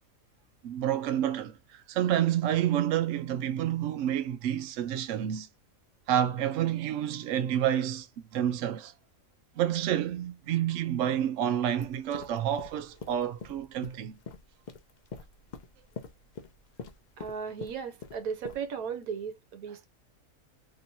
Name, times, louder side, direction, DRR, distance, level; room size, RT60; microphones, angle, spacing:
voice 1, 0.6-5.5 6.1-8.1 8.3-8.9 9.6-14.2, right 11 dB, 70° right, 0.8 m, -29 dB
sound 1, 11.8-18.6, left 5 dB, 70° left, 0.4 m, -45 dB
voice 2, 17.2-19.9, right 6 dB, 85° right, 1.2 m, -36 dB
3.1 x 2.8 x 2.7 m
omnidirectional pair, 1.5 m